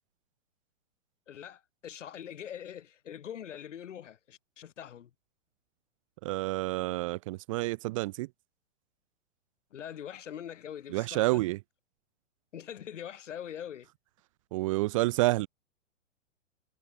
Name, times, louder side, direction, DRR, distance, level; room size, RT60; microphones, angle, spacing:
voice 1, 1.3-5.1 9.7-11.3 12.5-13.9, left 9 dB, 70° left, 7.4 m, -43 dB
voice 2, 6.2-8.3 10.9-11.6 14.5-15.5, right 20 dB, 30° right, 0.4 m, -29 dB
hypercardioid pair, 125°, 38 cm